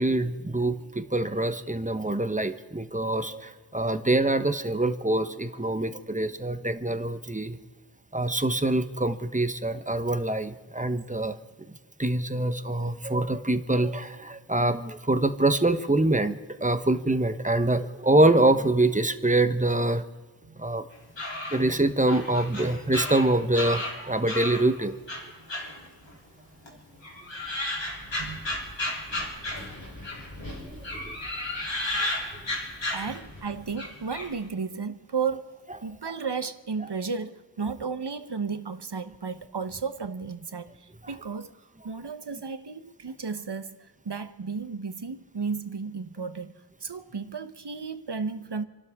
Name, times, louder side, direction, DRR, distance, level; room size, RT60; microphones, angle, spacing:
voice 1, 0.0-7.6 8.1-11.4 12.0-16.3 16.6-20.0 20.6-20.8 21.5-25.0 30.6-31.2, right 2 dB, 15° right, 1.1 m, -25 dB
sound 1, 20.9-24.7 25.1-26.4 26.6-30.3 30.8-33.4 33.7-34.3, left 1 dB, 75° left, 3.7 m, -33 dB
Wind, 27.4-34.3, left 1 dB, 50° left, 4.3 m, -46 dB
voice 2, 32.9-41.6 41.8-46.5 46.8-48.6, right 5 dB, 65° right, 1.1 m, -34 dB
28.5 x 12.0 x 3.7 m
wide cardioid pair, 55°, 44 cm